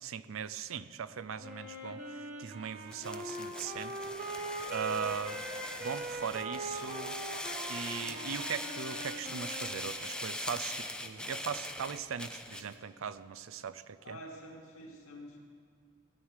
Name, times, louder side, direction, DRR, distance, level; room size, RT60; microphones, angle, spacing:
voice 1, 0.0-3.9 4.7-5.4 5.8-7.2 7.7-14.2, right 6 dB, 70° right, 15 dB, 0.5 m, -39 dB
Wind instrument woodwind instrument, 1.4-10.3, right 1 dB, 35° right, 1.5 m, -42 dB
sound 1, 2.9-12.7, left 1 dB, 5° left, 0.5 m, -41 dB
voice 2, 14.0-15.4, equal, 90° left, -1 dB, 2.3 m, -48 dB
16.5 x 9.0 x 4.8 m, 2.2 s
head